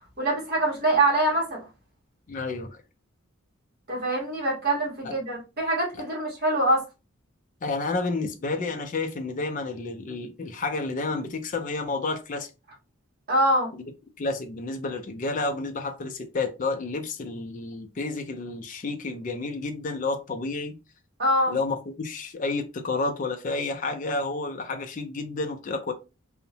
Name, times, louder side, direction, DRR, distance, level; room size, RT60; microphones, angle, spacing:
voice 1, 0.2-1.6 3.9-6.8 13.3-13.7 21.2-21.6, right 1 dB, 45° right, 1.1 m, -24 dB
voice 2, 2.3-2.8 5.0-5.2 6.0-6.1 7.6-12.5 14.2-20.8 21.5-25.9, left 3 dB, 35° left, 0.3 m, -30 dB
2.7 x 2.0 x 2.7 m
head